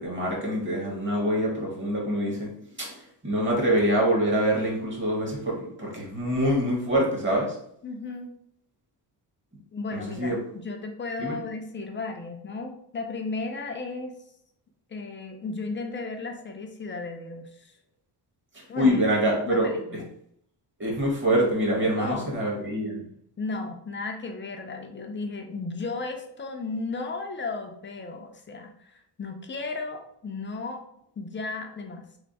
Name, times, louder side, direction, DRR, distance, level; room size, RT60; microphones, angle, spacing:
voice 1, 0.0-2.5 2.8-2.9 3.2-7.5 9.9-10.4 11.2-11.4 18.8-19.7 20.8-23.1, equal, 25° right, -3 dB, 1.2 m, -25 dB
voice 2, 7.8-8.3 9.7-14.2 14.9-17.7 18.7-20.1 22.0-22.2 23.4-30.8 31.2-32.0, left 3 dB, 30° left, 4 dB, 0.4 m, -35 dB
3.4 x 2.0 x 3.9 m, 0.69 s
cardioid pair, 130°, 43 cm